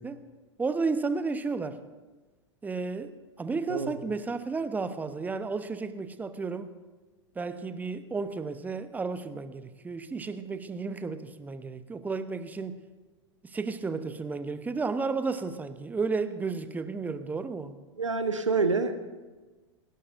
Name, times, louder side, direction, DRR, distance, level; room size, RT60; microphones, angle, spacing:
voice 1, 0.6-1.8 2.6-6.7 7.4-12.8 13.5-17.7, right 4 dB, 10° right, 11 dB, 0.8 m, -32 dB
voice 2, 18.0-18.9, right 4 dB, 80° right, 9 dB, 1.2 m, -27 dB
27.0 x 12.0 x 2.6 m, 1.2 s
figure-of-eight pair, 90°, 16 cm